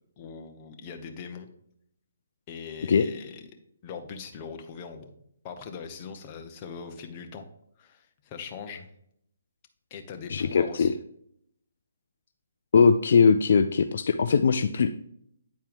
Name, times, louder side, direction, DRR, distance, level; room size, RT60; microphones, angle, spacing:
voice 1, 0.2-1.5 2.5-3.5 3.8-5.1 5.4-7.4 7.8-8.9 9.9-10.9, left 6 dB, 25° left, 5 dB, 0.9 m, -41 dB
voice 2, 10.3-10.9 12.7-14.9, left 5 dB, 60° left, 9 dB, 0.4 m, -20 dB
9.2 x 4.4 x 3.5 m, 0.70 s
hypercardioid pair, 155°, 0 cm